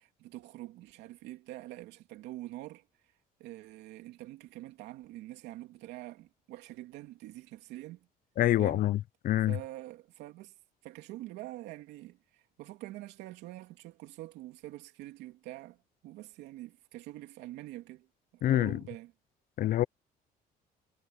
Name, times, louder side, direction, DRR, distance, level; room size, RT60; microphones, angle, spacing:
voice 1, 0.0-2.9 3.4-8.1 8.6-8.9 9.5-10.5 10.8-18.1 18.3-19.1, right 16 dB, 90° right, 3.2 m, -45 dB
voice 2, 8.4-9.0 9.2-9.6 18.4-18.8 19.6-19.8, left 13 dB, 55° left, 0.5 m, -26 dB
cardioid pair, 110°, 17 cm